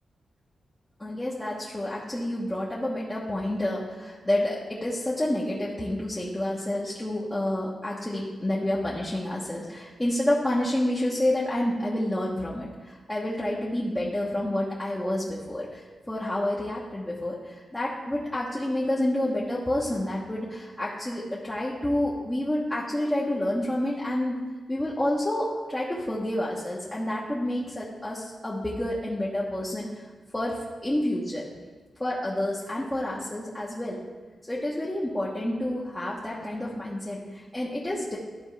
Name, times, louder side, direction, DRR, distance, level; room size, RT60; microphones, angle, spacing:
voice 1, 1.0-24.4 24.7-30.0 30.3-31.5 32.0-34.0 34.5-38.2, left 1 dB, 15° left, -6 dB, 1.1 m, -29 dB
12.5 x 4.3 x 3.3 m, 1.4 s
wide cardioid pair, 100°, 0 cm